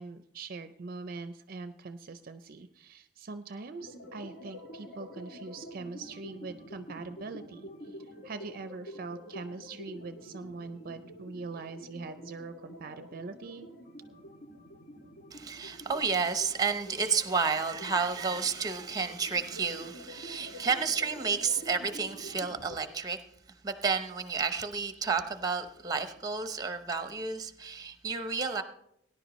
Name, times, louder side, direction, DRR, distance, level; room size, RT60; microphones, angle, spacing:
voice 1, 0.0-13.7, right 3 dB, 50° right, 10 dB, 0.5 m, -42 dB
sound 1, 3.8-22.8, equal, 60° left, 2.0 m, -48 dB
voice 2, 15.3-23.2 23.6-28.6, right 5 dB, 20° right, 9 dB, 0.8 m, -31 dB
18.5 x 10.5 x 3.1 m, 0.76 s
head